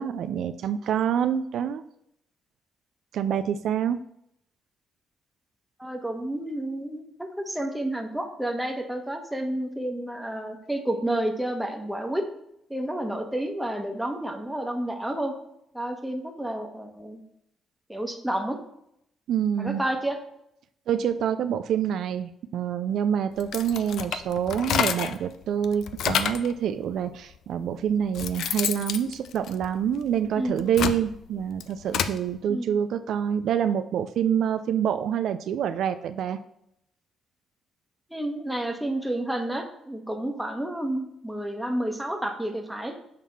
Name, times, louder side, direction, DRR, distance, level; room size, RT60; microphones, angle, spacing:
voice 1, 0.0-1.8 3.1-4.0 19.3-19.8 20.9-36.4, right 8 dB, 75° right, 10 dB, 0.3 m, -26 dB
voice 2, 5.8-12.2 12.7-15.3 15.7-17.2 17.9-18.6 19.6-20.2 30.4-30.6 32.5-32.7 38.1-43.0, right 1 dB, 5° right, 3 dB, 1.1 m, -30 dB
sound 1, 23.4-25.3 25.6-26.5 27.3-27.4 27.9-30.0 30.5-32.2, left 8 dB, 75° left, 0.4 m, -29 dB
6.4 x 3.6 x 5.7 m, 0.75 s
cardioid pair, 90°, 0 cm